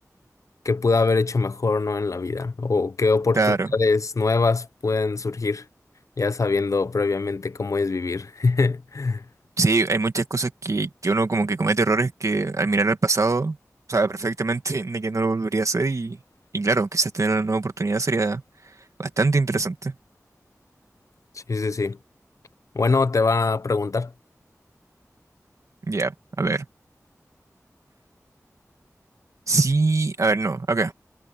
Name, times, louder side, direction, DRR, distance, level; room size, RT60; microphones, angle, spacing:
voice 1, 0.6-3.4 3.7-5.6 6.2-9.2 21.3-22.0 22.7-24.1, left 3 dB, 65° left, 0.6 m, -23 dB
voice 2, 3.4-3.7 9.6-13.6 13.9-16.2 16.5-18.4 19.0-19.9 25.9-26.7 29.5-30.9, right 3 dB, 65° right, 2.1 m, -23 dB
wide cardioid pair, 65°, 6 cm